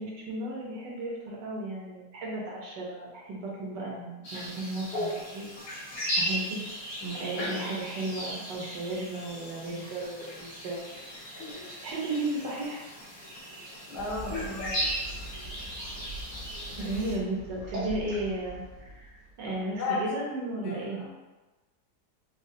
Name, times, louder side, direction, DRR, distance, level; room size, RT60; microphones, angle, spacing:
voice 1, 0.0-5.5 5.8-6.6 7.2-10.8 11.8-12.8 16.8-21.0, right 2 dB, 85° right, -4 dB, 1.5 m, -35 dB
sound 1, 4.2-17.1, equal, 85° left, 1.6 m, -36 dB
voice 2, 7.0-7.4 13.9-14.8 19.4-20.1 20.6-21.1, left 2 dB, 70° left, -4 dB, 1.4 m, -35 dB
sound 2, 13.9-19.8, right 2 dB, 55° right, 1.9 m, -42 dB
5.1 x 2.1 x 2.7 m, 1.1 s
omnidirectional pair, 1.8 m